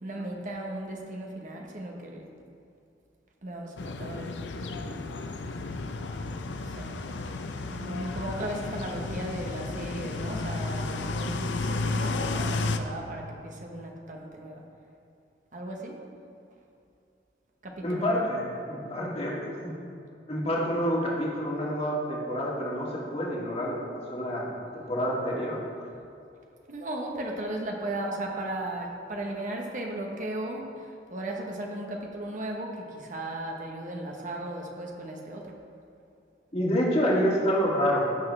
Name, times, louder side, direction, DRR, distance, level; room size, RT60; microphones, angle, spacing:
voice 1, 0.0-2.3 3.4-4.4 6.6-7.1 7.7-14.6 15.5-16.0 17.6-18.3 23.7-23.8 26.7-35.6, right 1 dB, 45° right, 0 dB, 1.2 m, -36 dB
sound 1, 3.8-12.8, left 3 dB, 80° left, 0.6 m, -32 dB
voice 2, 17.8-19.8 20.3-24.5 24.7-25.6 36.5-38.2, equal, 35° left, -4 dB, 2.0 m, -28 dB
16.0 x 6.4 x 3.3 m, 2.6 s
head